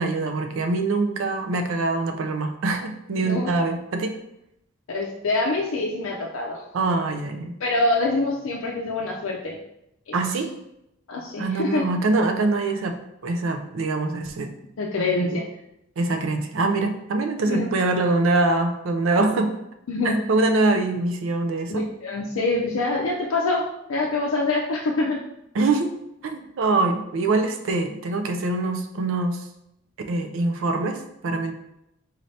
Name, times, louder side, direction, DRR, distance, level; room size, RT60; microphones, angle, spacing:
voice 1, 0.0-4.2 6.7-7.6 10.1-10.5 11.4-13.0 13.2-14.5 16.0-19.5 20.3-21.8 25.5-25.9 26.2-29.4 30.1-31.5, right 3 dB, 75° right, 6 dB, 0.4 m, -24 dB
voice 2, 4.9-6.6 7.6-9.6 10.1-10.2 11.1-11.9 14.8-15.4 17.5-17.7 19.9-20.2 21.7-25.2, left 2 dB, 80° left, -2 dB, 0.5 m, -25 dB
4.0 x 2.7 x 3.2 m, 0.82 s
head